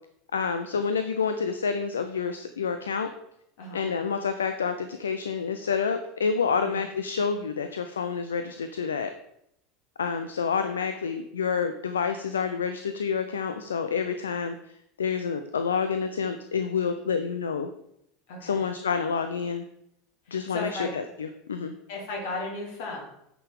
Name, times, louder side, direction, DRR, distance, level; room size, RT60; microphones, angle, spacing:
voice 1, 0.3-3.1 3.7-9.1 10.0-14.6 15.0-17.7 18.4-19.7 20.3-21.7, left 6 dB, 75° left, 9 dB, 0.5 m, -28 dB
voice 2, 18.3-18.7 20.3-20.9 21.9-23.0, left 2 dB, 60° left, -1 dB, 2.6 m, -35 dB
9.3 x 6.0 x 3.5 m, 0.77 s
figure-of-eight pair, 75°, 0 cm